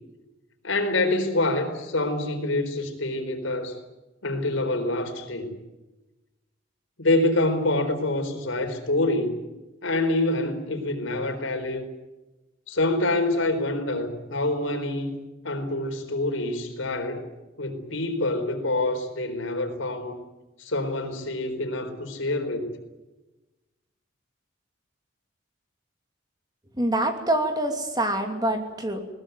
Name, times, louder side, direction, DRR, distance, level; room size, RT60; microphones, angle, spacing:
voice 1, 0.6-3.7 4.2-5.5 7.0-9.4 9.8-11.8 12.7-15.1 15.4-17.2 17.6-20.2 20.6-22.7, left 2 dB, 80° left, 6 dB, 4.3 m, -26 dB
voice 2, 26.8-29.0, right 1 dB, 20° right, 5 dB, 2.8 m, -25 dB
21.5 x 19.5 x 9.3 m, 1.1 s
head